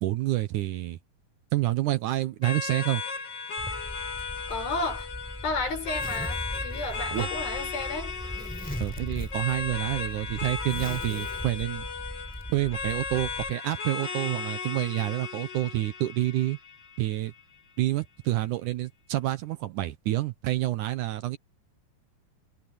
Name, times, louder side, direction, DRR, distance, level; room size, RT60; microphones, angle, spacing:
voice 1, 0.0-1.0 1.5-3.0 7.1-7.3 8.8-11.9 12.5-16.6 17.0-17.3 17.8-21.4, right 16 dB, 70° right, 2.0 m, -28 dB
sound 1, 2.4-17.4, left 5 dB, 40° left, 1.7 m, -36 dB
Zipper (clothing), 3.6-13.5, equal, ahead, 3.8 m, -38 dB
voice 2, 4.5-5.1 5.4-8.1, left 3 dB, 80° left, 8.1 m, -32 dB
omnidirectional pair, 4.2 m